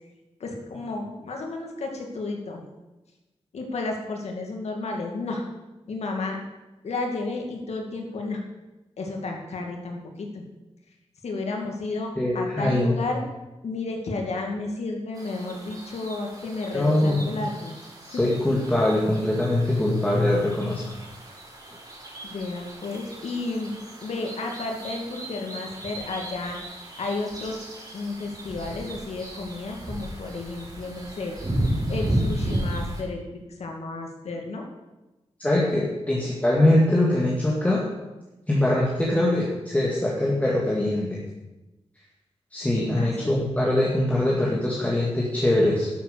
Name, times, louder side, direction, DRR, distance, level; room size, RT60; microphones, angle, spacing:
voice 1, 0.4-2.6 3.5-5.4 5.9-6.4 6.8-8.4 9.0-10.4 11.2-13.2 13.6-17.8 18.1-18.4 22.2-23.7 24.0-26.6 27.0-27.7 27.9-31.4 31.9-34.7 43.0-43.4, left 3 dB, 85° left, 1 dB, 2.3 m, -32 dB
voice 2, 12.2-13.0 16.7-17.4 18.1-20.8 35.4-37.8 38.5-41.2 42.5-45.9, left 1 dB, 15° left, -4 dB, 2.2 m, -22 dB
sound 1, 15.1-33.0, right 1 dB, 35° right, 4.2 m, -34 dB
11.5 x 7.6 x 6.8 m, 1.1 s
wide cardioid pair, 90°, 11 cm